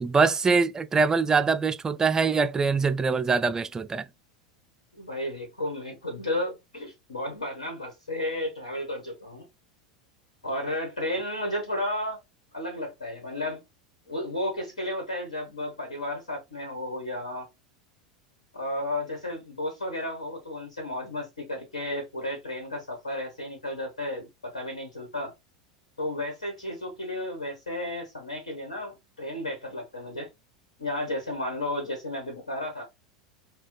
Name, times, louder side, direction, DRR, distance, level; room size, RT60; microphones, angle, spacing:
voice 1, 0.0-4.1, right 4 dB, 15° right, 0.3 m, -23 dB
voice 2, 4.9-9.5 10.4-12.2 12.5-13.6 14.1-17.5 18.5-25.3 26.0-30.3 30.8-32.8, left 1 dB, 80° left, 1.4 m, -33 dB
6.0 x 2.2 x 2.3 m
figure-of-eight pair, 85°, 4 cm